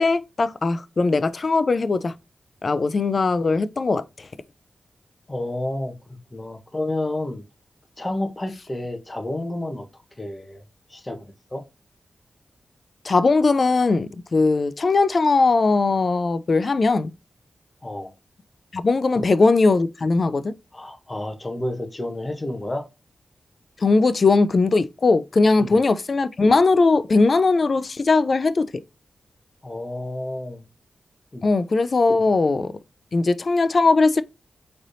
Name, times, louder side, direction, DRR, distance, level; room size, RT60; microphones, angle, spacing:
voice 1, 0.0-2.1 2.6-4.0 13.1-17.1 18.7-20.5 23.8-28.7 31.4-32.7 33.1-34.2, left 3 dB, 50° left, 0.3 m, -19 dB
voice 2, 5.3-7.4 8.0-9.9 10.2-10.6 10.9-11.2 11.5-11.6 17.8-18.1 19.1-19.3 20.7-22.8 25.6-25.8 29.6-30.6 31.3-31.4 32.1-32.2, left 1 dB, 25° left, 1.0 m, -30 dB
4.0 x 3.3 x 2.6 m
cardioid pair, 80°, 0 cm